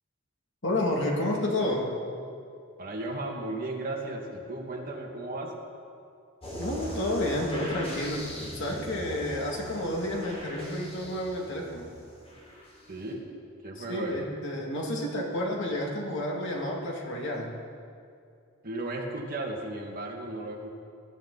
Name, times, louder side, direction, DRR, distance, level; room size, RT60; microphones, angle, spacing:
voice 1, 0.6-1.9 6.6-8.3 8.5-11.9 13.8-17.6, left 1 dB, 65° left, -1 dB, 2.4 m, -30 dB
voice 2, 2.8-5.5 12.9-13.2 13.6-14.2 18.6-20.7, right 2 dB, 45° right, -1 dB, 2.1 m, -35 dB
sound 1, 6.4-13.0, equal, 30° left, 3.5 m, -40 dB
20.0 x 13.0 x 4.1 m, 2.4 s
head